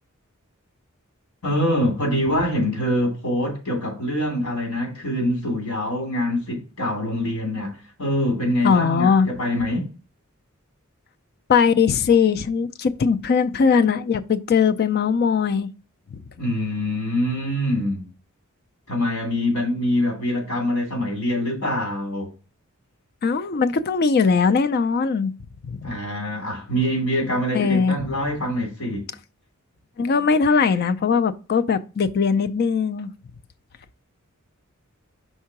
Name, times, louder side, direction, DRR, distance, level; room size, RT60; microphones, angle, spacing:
voice 1, 1.4-7.7 8.0-9.9 16.4-18.1 18.9-22.3 25.8-29.1, equal, 80° left, 3.0 m, -24 dB
voice 2, 8.6-9.3 11.5-15.7 16.1-16.2 23.2-25.3 25.6-25.9 27.5-28.0 30.0-33.1, left 5 dB, 50° left, 0.4 m, -20 dB
5.5 x 3.7 x 5.9 m
head